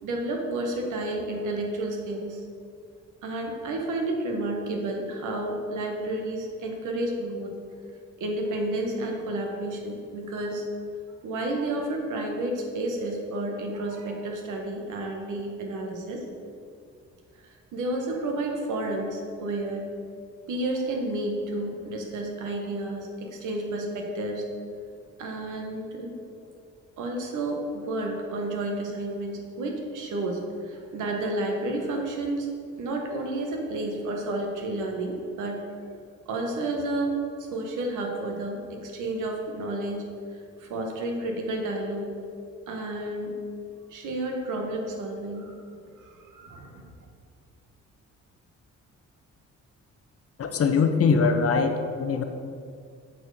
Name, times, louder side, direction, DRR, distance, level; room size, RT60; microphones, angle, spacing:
voice 1, 0.0-2.4 3.2-7.5 8.2-10.6 11.2-16.2 17.7-19.9 20.5-24.4 25.2-26.1 27.0-32.5 32.8-35.6 36.2-37.1 37.5-40.0 40.6-42.1 42.7-43.3 43.9-45.6 46.0-46.8, right 1 dB, 80° right, 2 dB, 1.5 m, -31 dB
voice 2, 50.4-52.2, left 5 dB, 50° left, 7 dB, 0.9 m, -22 dB
8.6 x 4.5 x 6.7 m, 2.3 s
cardioid pair, 90°, 30 cm